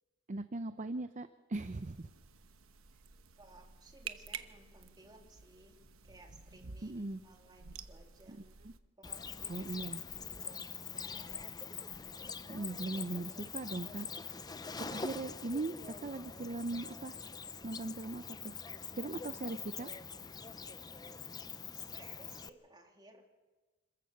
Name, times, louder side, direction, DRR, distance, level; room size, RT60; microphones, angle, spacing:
voice 1, 0.3-2.1 6.8-7.2 8.3-8.4 8.6-8.7 9.5-10.0 12.5-14.1 14.8-17.2 17.6-18.5 18.9-19.9, right 2 dB, 35° right, 11 dB, 0.6 m, -39 dB
sound 1, 1.5-8.8, right 7 dB, 85° right, 1.0 m, -51 dB
voice 2, 3.1-8.4 9.0-11.5 21.7-23.2, right 2 dB, 20° right, 1 dB, 3.0 m, -59 dB
Cricket, 9.0-22.5, left 5 dB, 20° left, 0.6 m, -44 dB
26.5 x 14.5 x 6.9 m, 1.2 s
head